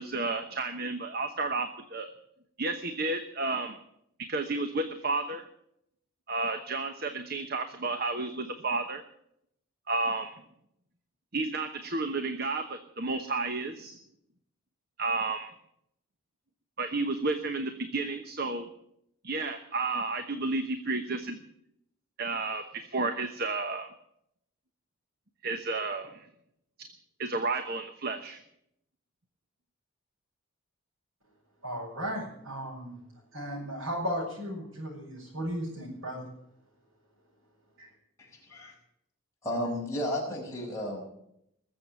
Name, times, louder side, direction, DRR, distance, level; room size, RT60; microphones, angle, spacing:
voice 1, 0.0-2.1 2.6-3.8 4.3-5.4 6.3-9.0 9.9-10.3 11.3-14.0 15.0-15.5 16.8-18.7 19.2-21.4 22.2-23.9 25.4-26.3 27.2-28.4, right 3 dB, 45° right, 7 dB, 1.1 m, -32 dB
voice 2, 31.6-32.9 33.3-36.3 37.8-37.9, equal, 75° right, -6 dB, 6.6 m, -35 dB
voice 3, 38.2-38.7 39.4-41.0, left 1 dB, 15° left, -3 dB, 5.8 m, -33 dB
20.5 x 7.7 x 8.9 m, 0.75 s
head